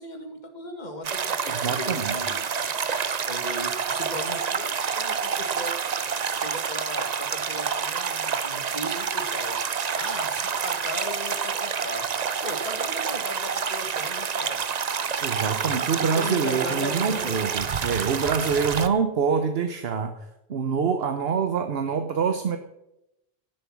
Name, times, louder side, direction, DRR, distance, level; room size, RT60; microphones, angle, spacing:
voice 1, 0.0-2.5 3.3-5.8 6.3-9.6 9.9-12.1 12.4-14.7 15.5-17.4, left 1 dB, 45° left, 5 dB, 2.0 m, -37 dB
sound 1, 1.0-18.9, right 6 dB, 45° right, 0.7 m, -28 dB
voice 2, 1.6-2.1 15.2-22.6, right 6 dB, 70° right, 7 dB, 1.1 m, -26 dB
16.5 x 7.6 x 6.2 m, 0.87 s
omnidirectional pair, 1.1 m